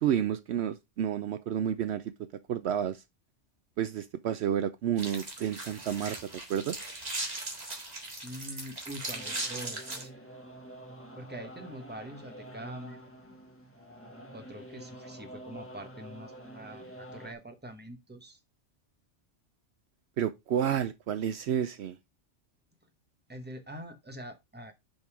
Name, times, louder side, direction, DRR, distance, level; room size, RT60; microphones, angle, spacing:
voice 1, 0.0-2.0 2.5-3.0 3.8-6.2 6.5-6.8 20.2-22.0, right 9 dB, 70° right, 0.8 m, -30 dB
sound 1, 5.0-10.0, right 2 dB, 35° right, 1.9 m, -38 dB
voice 2, 8.2-10.1 11.1-13.2 14.3-18.4 23.3-24.7, right 1 dB, 10° right, 1.1 m, -44 dB
sound 2, 9.1-17.3, right 1 dB, 10° left, 1.5 m, -48 dB
5.3 x 5.3 x 4.8 m
omnidirectional pair, 1.2 m